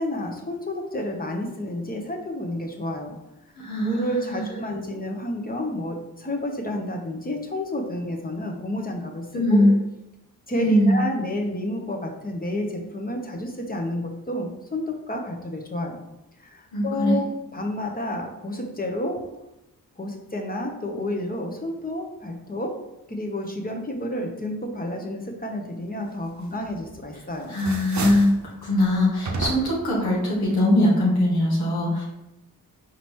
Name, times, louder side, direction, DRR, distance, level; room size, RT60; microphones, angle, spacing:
voice 1, 0.0-3.2 3.8-9.7 10.5-16.0 16.4-19.2 20.0-22.8 23.1-27.6, left 1 dB, 25° left, 1 dB, 1.0 m, -30 dB
voice 2, 3.6-4.5 9.3-9.7 10.6-11.0 16.7-17.2 27.5-28.3 28.6-32.0, left 1 dB, 85° left, -6 dB, 1.6 m, -21 dB
sound 1, 26.7-27.1 27.4-28.4 29.2-29.9, right 3 dB, 50° right, 0.8 m, -31 dB
4.5 x 3.8 x 3.1 m, 0.89 s
cardioid pair, 50°, 36 cm